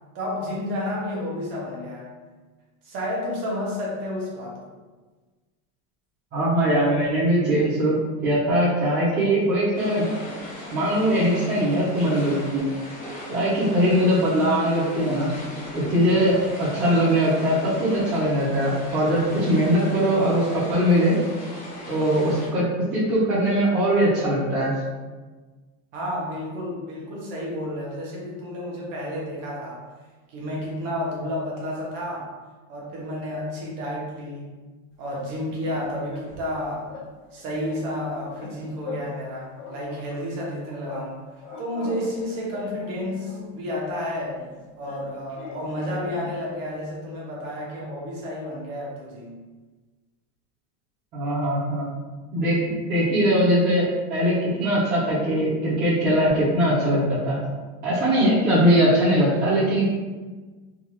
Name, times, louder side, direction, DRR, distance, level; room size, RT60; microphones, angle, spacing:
voice 1, 0.1-2.1 2.8-4.6 25.9-29.8 30.3-32.3 32.7-34.6 35.0-36.9 37.3-41.2 41.6-44.4 44.8-49.4, left 1 dB, 45° right, -4 dB, 1.2 m, -31 dB
voice 2, 6.3-8.0 8.2-10.0 10.7-12.7 13.3-15.3 15.7-21.1 21.9-22.7 22.9-24.7 51.1-51.9 52.3-52.6 52.9-57.4 57.8-59.9, equal, 25° right, -13 dB, 0.9 m, -21 dB
sound 1, 9.7-22.5, left 1 dB, 25° left, 0.6 m, -38 dB
sound 2, 35.2-36.6 36.9-37.1 37.4-39.3 39.6-41.1 41.4-43.6 44.4-46.4, left 3 dB, 85° left, 1.2 m, -40 dB
3.7 x 2.6 x 3.0 m, 1.3 s
supercardioid pair, 170°, 43 cm